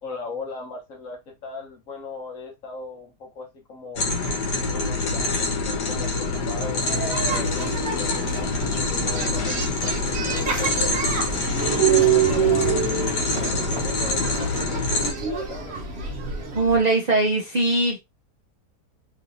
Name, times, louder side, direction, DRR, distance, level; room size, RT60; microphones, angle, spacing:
voice 1, 0.0-4.0 4.7-11.0 11.5-12.8 13.3-15.7, left 4 dB, 55° left, 1.3 m, -38 dB
sound 1, 4.0-15.1, left 3 dB, 80° left, 1.5 m, -26 dB
sound 2, 6.8-16.8, right 7 dB, 50° right, 0.9 m, -26 dB
voice 2, 16.5-18.0, right 2 dB, 75° right, 0.3 m, -21 dB
3.2 x 3.1 x 2.6 m
omnidirectional pair, 1.7 m